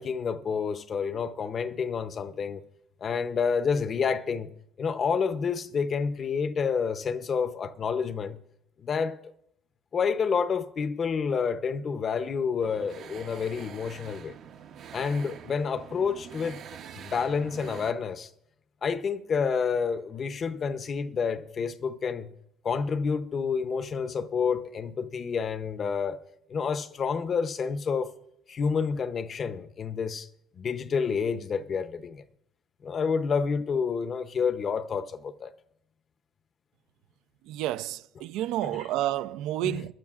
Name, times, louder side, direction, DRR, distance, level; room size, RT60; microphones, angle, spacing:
voice 1, 0.0-2.6 3.0-4.5 4.8-8.4 8.8-9.3 9.9-14.3 14.9-16.6 16.9-18.3 18.8-22.3 22.6-26.2 26.5-28.1 28.5-30.3 30.6-32.2 32.8-35.5 38.6-38.9 39.6-39.8, left 6 dB, 40° left, 0.6 m, -29 dB
sound 1, 12.6-17.9, right 8 dB, 55° right, 0.7 m, -45 dB
voice 2, 37.5-39.9, right 13 dB, 75° right, 0.4 m, -30 dB
21.5 x 11.5 x 2.4 m
cardioid pair, 115°, 0 cm